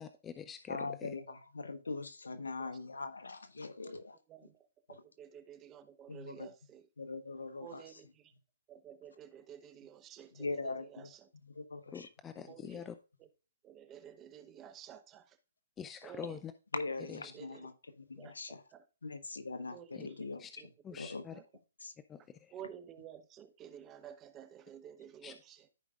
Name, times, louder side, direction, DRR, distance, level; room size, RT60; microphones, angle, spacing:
voice 1, 0.0-1.1 11.9-12.9 15.8-16.5 17.1-17.3 20.4-20.5 20.8-21.4 22.1-22.2 25.2-25.3, left 8 dB, 15° left, 0.4 m, -45 dB
voice 2, 0.7-4.1 6.1-6.5 7.0-7.8 10.4-11.1 11.5-12.1 16.7-17.7 18.0-18.6 19.0-20.4 21.0-21.2 21.8-21.9, left 3 dB, 80° left, 1.0 m, -41 dB
voice 3, 3.8-6.9 7.6-8.3 8.7-11.3 12.5-12.8 13.2-13.3 13.6-15.4 16.0-16.4 17.2-17.7 18.2-18.9 19.7-20.3 20.6-21.5 22.5-25.7, right 9 dB, 20° right, 0.8 m, -53 dB
14.0 x 4.9 x 2.4 m
figure-of-eight pair, 135°, 0 cm